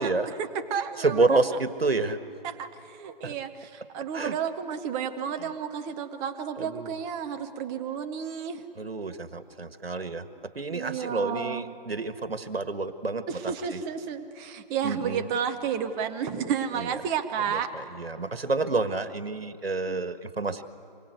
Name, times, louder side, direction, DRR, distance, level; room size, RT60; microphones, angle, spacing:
voice 1, 0.4-1.2 2.4-8.6 10.7-11.7 13.3-17.7 19.9-20.0, right 7 dB, 10° right, 8 dB, 0.7 m, -32 dB
voice 2, 1.0-2.2 3.2-3.4 4.1-4.3 5.4-5.5 6.6-6.9 8.7-10.3 10.5-13.8 14.8-15.3 16.7-16.9 17.5-20.6, right 3 dB, 90° right, 10 dB, 1.7 m, -29 dB
26.0 x 23.0 x 8.1 m, 2.7 s
figure-of-eight pair, 145°, 29 cm